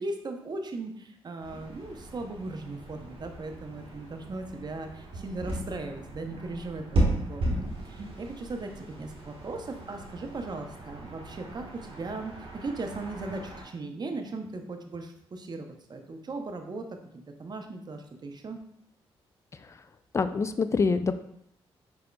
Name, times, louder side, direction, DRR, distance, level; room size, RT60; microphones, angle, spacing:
voice 1, 0.0-11.6 11.9-16.8 17.3-18.6, right 2 dB, 45° right, 5 dB, 0.6 m, -38 dB
sound 1, 1.4-13.6, right 1 dB, 65° right, 1.2 m, -35 dB
voice 2, 20.1-21.1, left 4 dB, 30° left, 11 dB, 0.3 m, -26 dB
5.0 x 3.4 x 2.2 m, 0.72 s
supercardioid pair, 60°, 10 cm